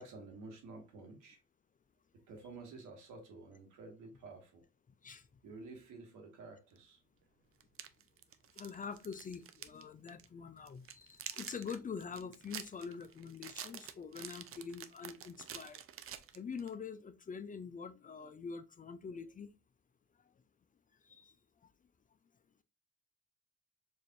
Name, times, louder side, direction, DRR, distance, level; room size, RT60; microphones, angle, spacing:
voice 1, 0.0-1.4 2.3-4.6 5.4-7.0, right 3 dB, 85° right, 1.4 m, -51 dB
voice 2, 5.0-5.4 8.5-15.8 16.1-19.5 20.2-20.3 21.0-21.3 21.6-21.7, left 6 dB, 30° left, 0.3 m, -45 dB
sound 1, 6.8-6.9 7.6-9.8 10.1-10.3 10.7-16.7, right 9 dB, 45° right, 0.5 m, -48 dB
4.7 x 2.6 x 2.6 m
cardioid pair, 90°, 30 cm